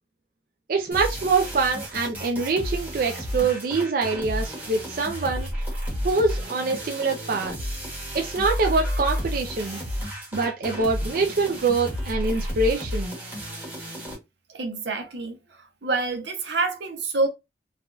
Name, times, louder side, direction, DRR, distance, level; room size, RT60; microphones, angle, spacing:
voice 1, 0.7-5.5 6.0-7.5 8.1-9.8 10.3-13.2, right 3 dB, 55° right, 0.4 m, -24 dB
sound 1, 0.9-14.1, equal, 10° right, 1.1 m, -32 dB
voice 2, 14.5-17.3, right 3 dB, 80° right, 0.8 m, -27 dB
3.3 x 2.3 x 2.4 m
head